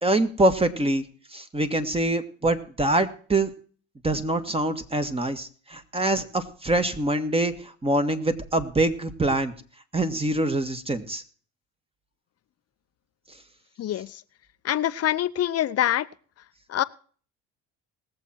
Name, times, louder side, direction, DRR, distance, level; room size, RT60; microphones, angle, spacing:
voice 1, 0.0-1.0 1.3-3.5 4.0-9.5 9.9-11.2, right 1 dB, 15° right, 8 dB, 1.9 m, -24 dB
voice 2, 13.8-14.2 14.6-16.1 16.7-16.8, left 12 dB, 45° left, 16 dB, 0.7 m, -25 dB
19.5 x 7.7 x 4.4 m, 0.43 s
supercardioid pair, 85°, 33 cm